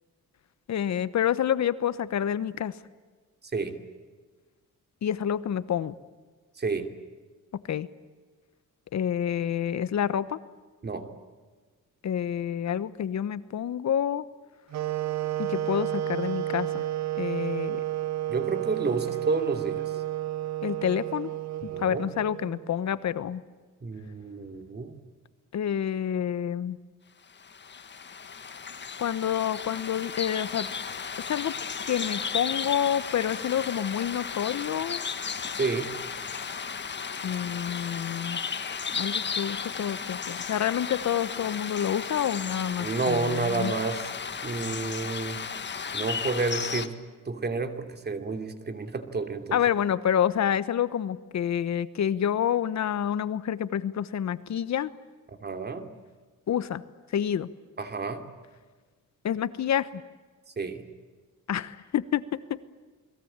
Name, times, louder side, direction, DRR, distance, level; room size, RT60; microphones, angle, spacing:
voice 1, 0.7-2.7 5.0-5.9 7.7-7.9 8.9-10.4 12.0-14.3 15.4-16.8 17.2-17.8 20.6-21.3 21.6-23.4 25.5-26.8 29.0-30.7 31.3-31.5 31.9-35.0 37.2-38.4 38.9-43.7 49.5-54.9 56.5-56.8 57.1-57.5 59.2-59.9 61.5-62.2, left 9 dB, 60° left, 15 dB, 1.1 m, -28 dB
sound 1, 14.7-22.7, right 13 dB, 60° right, 0.8 m, -31 dB
voice 2, 18.3-19.8 21.7-22.0 23.8-24.9 35.6-35.9 42.8-44.1 44.4-45.4 45.9-47.0 47.3-49.6 55.4-55.9 57.8-58.2 60.6-60.8, right 4 dB, 30° right, 7 dB, 2.9 m, -30 dB
sound 2, 27.4-46.9, left 6 dB, 35° left, 1.7 m, -34 dB
29.0 x 21.5 x 8.9 m, 1.4 s
cardioid pair, 130°, 31 cm